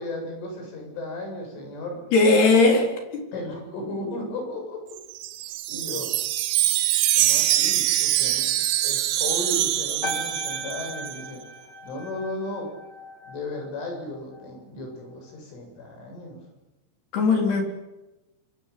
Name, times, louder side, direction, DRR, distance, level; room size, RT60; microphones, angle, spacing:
voice 1, 0.0-2.1 3.3-5.0 5.4-6.1 7.1-11.4 11.8-12.7 13.3-16.4, left 2 dB, 80° left, 2 dB, 10.0 m, -35 dB
voice 2, 2.1-3.2 17.1-17.6, left 3 dB, 55° left, 3 dB, 5.8 m, -19 dB
Wind chime, 5.0-11.2, right 14 dB, 75° right, 3.2 m, -24 dB
sound 1, 10.0-14.6 14.9-15.3, equal, 25° left, 2.9 m, -38 dB
27.0 x 21.5 x 8.7 m, 1.0 s
omnidirectional pair, 5.5 m